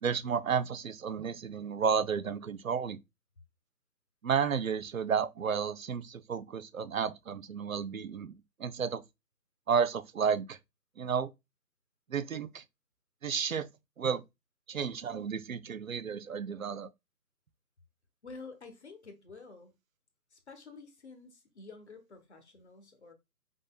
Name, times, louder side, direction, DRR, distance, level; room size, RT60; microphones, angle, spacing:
voice 1, 0.0-3.0 4.2-8.3 8.6-9.0 9.7-10.6 11.0-11.3 12.1-12.6 13.2-13.7 14.0-14.2 14.7-16.9, right 6 dB, 55° right, 0.6 m, -32 dB
voice 2, 18.2-19.7 20.3-23.1, left 4 dB, 40° left, 1.1 m, -50 dB
5.3 x 3.7 x 2.2 m
figure-of-eight pair, 155°, 50 cm